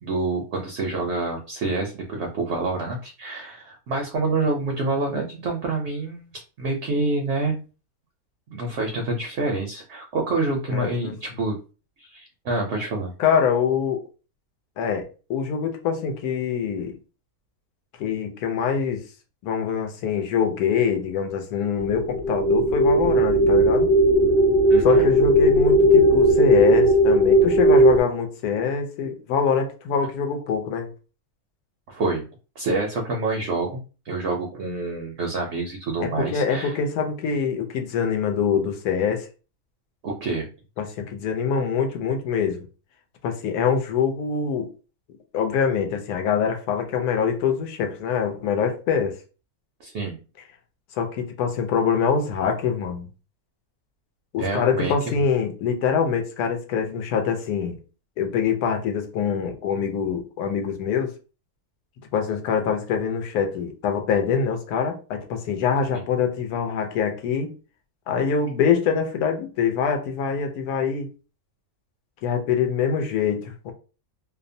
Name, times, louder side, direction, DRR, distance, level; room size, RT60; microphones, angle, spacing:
voice 1, 0.0-6.3 6.6-7.6 8.5-11.6 12.0-13.1 24.7-25.0 31.9-32.2 32.6-36.8 40.0-40.5 49.8-50.2 54.4-54.9, right 3 dB, 65° right, 0.7 m, -27 dB
voice 2, 10.7-11.1 13.2-14.0 14.8-16.9 18.0-19.0 19.4-23.9 24.8-30.9 36.0-39.3 40.8-42.6 43.2-44.7 45.3-49.2 50.9-53.1 54.3-57.8 58.2-61.1 62.1-67.5 68.1-71.1 72.2-73.7, left 6 dB, 85° left, 1.1 m, -24 dB
sound 1, 21.8-28.0, right 1 dB, 50° left, 0.7 m, -17 dB
2.7 x 2.1 x 2.5 m
omnidirectional pair, 1.6 m